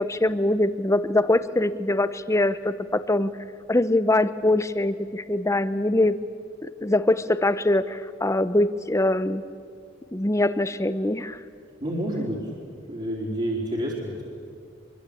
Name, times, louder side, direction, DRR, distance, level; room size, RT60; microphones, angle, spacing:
voice 1, 0.0-3.3 3.7-6.2 6.6-9.4 10.1-11.4, left 1 dB, 15° left, 14 dB, 0.8 m, -23 dB
voice 2, 11.8-12.4 12.9-14.4, equal, 35° right, -4 dB, 4.2 m, -29 dB
25.0 x 24.0 x 8.7 m, 2.3 s
head